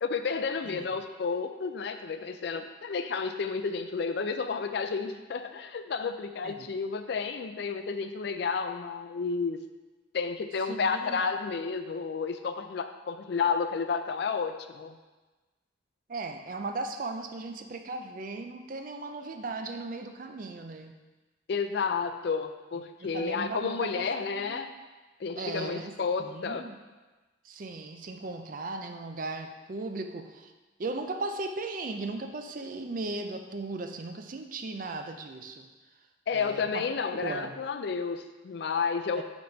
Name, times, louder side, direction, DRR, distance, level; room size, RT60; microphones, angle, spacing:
voice 1, 0.0-9.6 10.1-15.0 21.5-24.7 25.2-26.6 36.3-39.2, left 5 dB, 60° left, 9 dB, 0.4 m, -31 dB
voice 2, 10.7-11.2 16.1-20.9 22.7-24.6 25.4-26.8 27.4-30.5 30.8-35.7 36.3-36.8 37.2-37.5 39.2-39.3, right 3 dB, 45° right, 6 dB, 0.4 m, -37 dB
5.2 x 4.1 x 5.7 m, 1.2 s
head